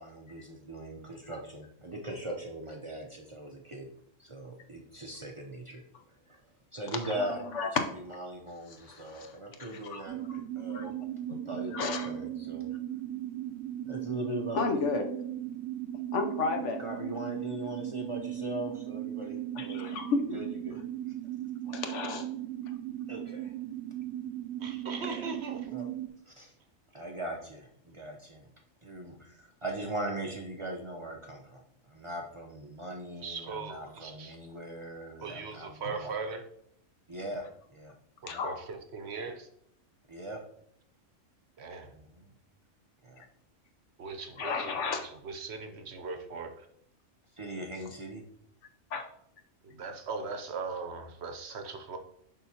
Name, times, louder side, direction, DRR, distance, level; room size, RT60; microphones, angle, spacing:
voice 1, 0.0-3.9 4.2-5.9 6.3-6.4 6.7-7.7 7.9-11.0 11.3-12.7 13.8-14.9 16.8-19.9 20.3-20.8 23.1-23.5 25.0-25.3 25.7-25.9 26.3-26.5 26.9-28.5 28.8-36.1 37.1-38.0 38.3-38.5 40.1-40.4 41.9-42.3 43.0-43.2 47.3-48.2, right 1 dB, 40° right, 1 dB, 0.5 m, -40 dB
voice 2, 7.2-7.7 8.9-9.3 9.6-10.4 10.7-10.9 11.7-12.1 14.5-15.1 16.1-16.8 19.6-20.4 21.7-22.3 38.3-38.6 44.4-45.0 48.9-49.1, left 4 dB, 70° left, 6 dB, 1.0 m, -33 dB
sound 1, 10.1-26.1, right 12 dB, 90° right, 1.0 m, -37 dB
voice 3, 24.6-25.8 33.2-34.4 35.2-36.4 38.2-39.5 41.6-41.9 44.0-46.7 49.6-52.0, right 4 dB, 60° right, 6 dB, 0.9 m, -39 dB
10.5 x 3.8 x 2.8 m, 0.70 s
omnidirectional pair, 1.3 m